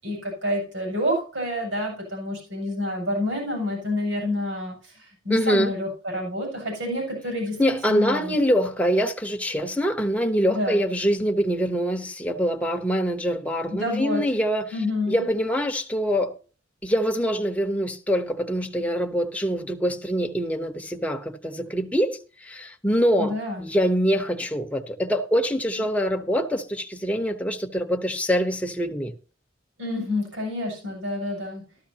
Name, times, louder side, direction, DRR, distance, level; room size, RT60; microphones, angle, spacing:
voice 1, 0.0-8.4 10.5-10.8 13.7-14.3 14.7-15.2 23.2-23.7 29.8-31.6, left 1 dB, 80° right, 7.1 m, -28 dB
voice 2, 5.3-5.7 7.6-14.7 15.1-16.3 16.8-23.3 23.6-29.1, equal, 5° left, 0.9 m, -24 dB
14.0 x 13.0 x 2.8 m
head